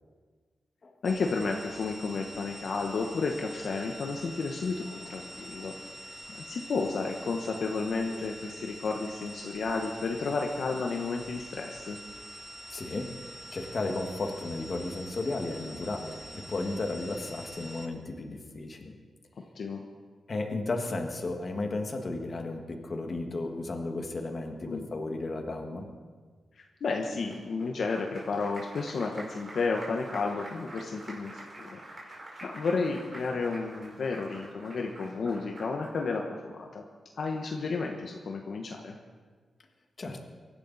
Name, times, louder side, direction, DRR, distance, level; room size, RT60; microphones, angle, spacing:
voice 1, 1.0-5.7 6.3-12.0 19.5-19.8 24.7-24.9 26.6-31.8 32.4-36.8 37.2-39.0, left 4 dB, 65° left, 2 dB, 1.2 m, -32 dB
sound 1, 1.0-17.9, equal, 10° right, 1.9 m, -45 dB
voice 2, 4.9-5.9 12.7-13.1 13.5-19.0 20.3-25.9 40.0-40.2, left 2 dB, 40° left, 3 dB, 1.7 m, -34 dB
Applause, 27.3-36.0, right 1 dB, 35° right, 5.0 m, -47 dB
24.0 x 11.5 x 4.1 m, 1.5 s
wide cardioid pair, 125°, 0 cm